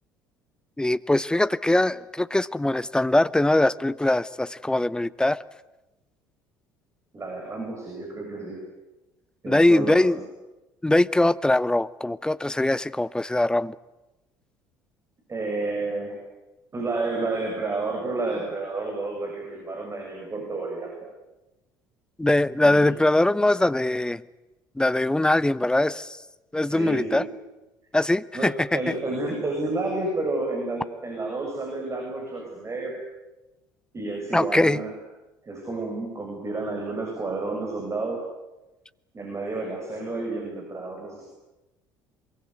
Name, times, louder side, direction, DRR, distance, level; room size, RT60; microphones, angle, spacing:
voice 1, 0.8-5.4 9.5-10.2 10.8-13.7 22.2-24.2 24.8-26.2 26.5-27.2 27.9-28.8 34.3-34.8, left 1 dB, 5° left, 17 dB, 0.8 m, -22 dB
voice 2, 7.1-8.6 9.4-10.1 15.3-16.2 16.7-20.9 22.6-22.9 26.7-27.3 28.3-33.0 33.9-34.9 35.4-38.2 39.1-41.3, right 2 dB, 25° right, 1 dB, 7.2 m, -30 dB
23.5 x 22.5 x 9.6 m, 1.0 s
figure-of-eight pair, 60°, 11 cm